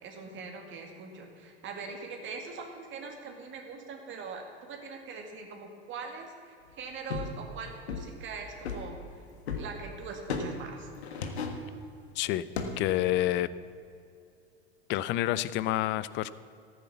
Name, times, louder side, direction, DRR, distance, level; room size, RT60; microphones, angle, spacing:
voice 1, 0.0-9.0 9.5-10.9, right 4 dB, 35° right, 2 dB, 2.2 m, -42 dB
sound 1, 7.1-7.5 7.9-8.2 8.7-9.8 10.3-10.6 11.0-11.7 12.6-13.0 13.3-13.4, left 5 dB, 75° left, 1.6 m, -35 dB
voice 2, 12.2-12.5 12.8-13.5 14.9-16.3, left 14 dB, 35° left, 17 dB, 0.5 m, -28 dB
14.0 x 9.5 x 7.1 m, 2.6 s
hypercardioid pair, 90°, 33 cm